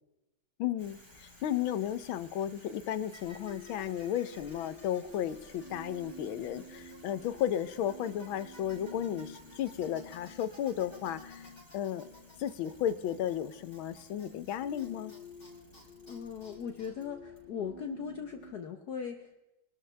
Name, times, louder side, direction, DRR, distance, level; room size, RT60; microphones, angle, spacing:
voice 1, 0.6-11.5 11.7-12.1 12.4-15.1, left 10 dB, 90° left, 14 dB, 1.6 m, -34 dB
Bicycle, 0.8-17.8, left 1 dB, 10° left, 5.7 m, -56 dB
sound 1, 3.3-18.6, left 2 dB, 40° left, 0.8 m, -51 dB
voice 2, 16.1-19.4, left 7 dB, 60° left, 5 dB, 1.4 m, -39 dB
24.0 x 13.0 x 3.4 m, 0.93 s
omnidirectional pair, 2.2 m